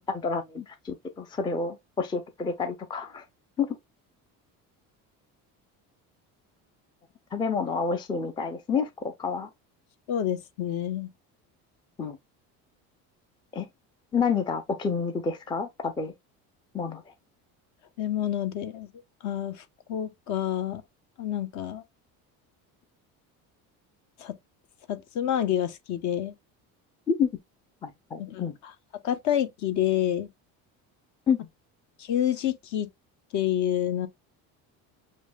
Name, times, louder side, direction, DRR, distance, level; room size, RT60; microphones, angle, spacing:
voice 1, 0.1-3.2 3.6-3.7 7.3-9.5 12.0-12.2 13.5-13.7 14.1-16.1 16.7-17.0 27.1-27.3 27.8-28.5 31.3-31.4, left 5 dB, 15° left, 0.4 m, -29 dB
voice 2, 10.1-11.1 18.0-18.9 19.2-19.6 19.9-20.8 21.2-21.8 24.2-24.3 24.9-26.3 28.2-28.4 29.0-30.3 32.1-32.9 33.3-34.1, left 10 dB, 55° left, 1.0 m, -28 dB
7.1 x 2.8 x 2.2 m
cardioid pair, 160°, 34 cm